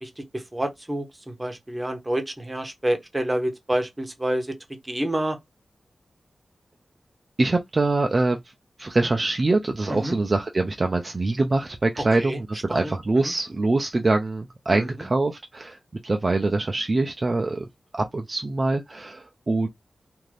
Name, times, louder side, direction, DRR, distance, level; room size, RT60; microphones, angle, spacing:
voice 1, 0.0-4.6 4.8-5.4 9.9-10.1 12.2-12.4 12.7-13.3 14.7-14.9, right 1 dB, 15° right, 0.7 m, -28 dB
voice 2, 7.4-8.4 8.8-15.8 16.0-17.6 17.9-19.7, right 2 dB, 40° right, 0.3 m, -24 dB
2.6 x 2.4 x 3.1 m
wide cardioid pair, 100°, 0 cm